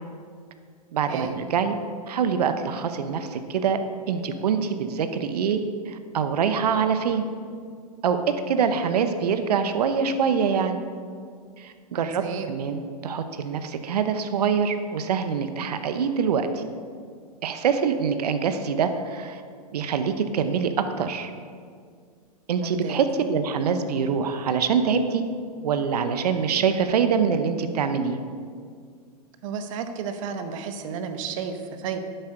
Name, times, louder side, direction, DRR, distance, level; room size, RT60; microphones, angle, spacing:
voice 1, 0.9-1.8 2.1-3.8 4.1-7.2 8.0-10.8 11.6-16.6 17.4-19.4 19.7-21.3 22.5-25.2 25.6-28.2, right 6 dB, 75° right, 9 dB, 0.9 m, -25 dB
voice 2, 11.9-12.5 22.6-23.0 29.4-32.0, right 6 dB, 55° right, 7 dB, 1.2 m, -32 dB
10.5 x 7.9 x 5.0 m, 2.1 s
hypercardioid pair, 125°, 20 cm